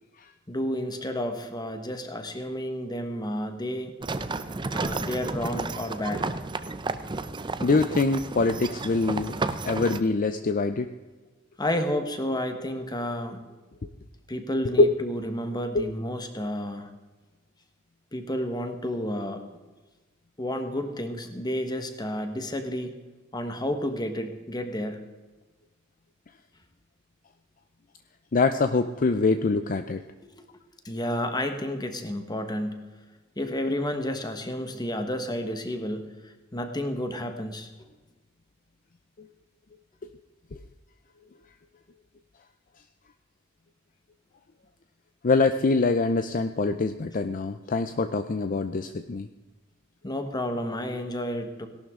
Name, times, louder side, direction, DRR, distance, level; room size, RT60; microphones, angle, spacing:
voice 1, 0.5-3.9 4.7-6.3 11.6-13.4 14.3-16.9 18.1-19.4 20.4-23.0 23.3-25.0 30.3-30.4 30.8-32.9 33.4-37.7 50.0-51.7, left 1 dB, 20° left, 6 dB, 1.4 m, -31 dB
sound 1, 4.0-10.0, right 3 dB, 25° right, 0.5 m, -32 dB
voice 2, 7.6-10.9 14.8-14.9 15.7-15.9 28.3-30.0 39.2-39.3 40.5-40.6 45.2-49.3, left 3 dB, 40° left, 9 dB, 0.5 m, -24 dB
17.5 x 11.5 x 3.7 m, 1.2 s
head